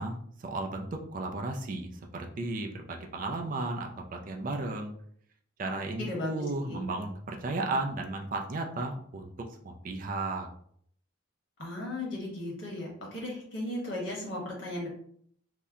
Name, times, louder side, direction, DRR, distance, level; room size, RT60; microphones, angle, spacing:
voice 1, 0.0-4.9 5.6-10.5, right 2 dB, 40° right, 2 dB, 0.4 m, -34 dB
voice 2, 6.0-6.8 11.6-14.9, left 1 dB, 65° left, -3 dB, 1.2 m, -36 dB
2.8 x 2.1 x 3.6 m, 0.63 s
head